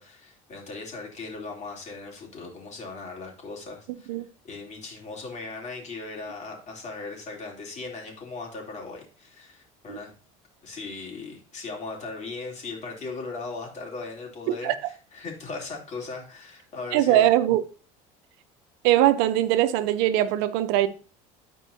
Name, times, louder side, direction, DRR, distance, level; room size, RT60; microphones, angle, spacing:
voice 1, 0.0-4.1 4.4-10.1 10.6-17.3, left 3 dB, 40° left, 3.2 m, -38 dB
voice 2, 16.9-17.6 18.8-20.9, right 13 dB, 75° right, 0.7 m, -21 dB
12.5 x 4.6 x 2.8 m
supercardioid pair, 95°, 18 cm